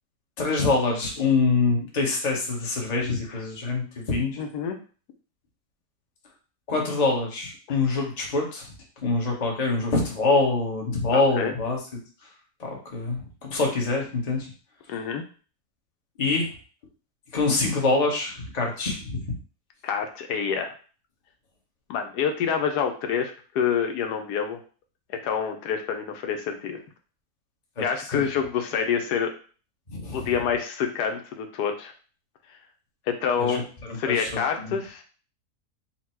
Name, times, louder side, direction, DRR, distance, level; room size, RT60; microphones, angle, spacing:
voice 1, 0.4-4.4 6.7-8.7 9.0-11.8 12.6-14.5 16.2-16.5 17.3-19.3 28.1-28.2 29.9-30.2 33.4-33.6 33.9-34.3 34.6-34.8, left 3 dB, 30° left, -1 dB, 0.9 m, -25 dB
voice 2, 4.4-4.8 7.7-7.8 11.1-11.5 14.9-15.2 19.8-20.7 21.9-24.6 25.1-26.8 27.8-29.3 30.1-31.9 32.5-32.6 33.1-33.6 33.9-35.0, left 7 dB, 80° left, 5 dB, 1.1 m, -27 dB
4.3 x 2.2 x 4.3 m, 0.38 s
omnidirectional pair, 1.7 m